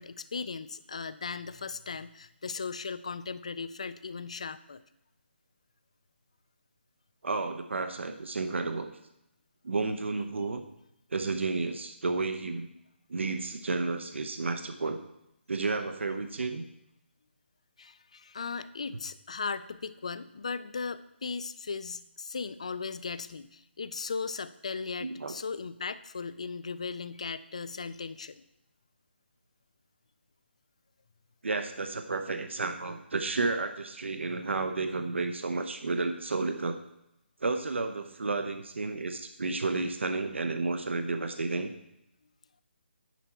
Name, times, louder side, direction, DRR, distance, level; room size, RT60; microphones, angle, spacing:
voice 1, 0.0-4.8 17.8-28.4, left 5 dB, 35° left, 15 dB, 0.3 m, -37 dB
voice 2, 7.2-8.9 9.6-10.6 11.1-12.7 13.1-15.0 15.5-16.7 25.0-25.3 31.4-36.8 37.4-41.7, right 3 dB, 80° right, 7 dB, 0.8 m, -31 dB
10.0 x 4.4 x 5.9 m, 0.85 s
hypercardioid pair, 175°, 6 cm